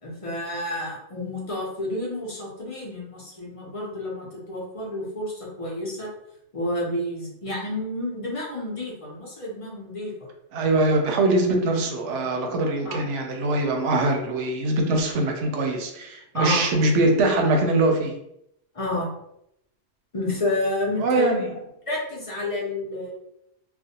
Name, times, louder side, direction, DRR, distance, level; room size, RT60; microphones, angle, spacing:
voice 1, 0.0-6.1 6.5-10.3 12.8-13.1 16.3-16.6 18.7-19.1 20.1-21.3 21.9-23.1, left 1 dB, 40° left, -3 dB, 0.5 m, -30 dB
voice 2, 10.5-18.2 21.0-21.6, right 2 dB, 80° right, 3 dB, 0.9 m, -22 dB
2.4 x 2.1 x 2.7 m, 0.79 s
omnidirectional pair, 1.2 m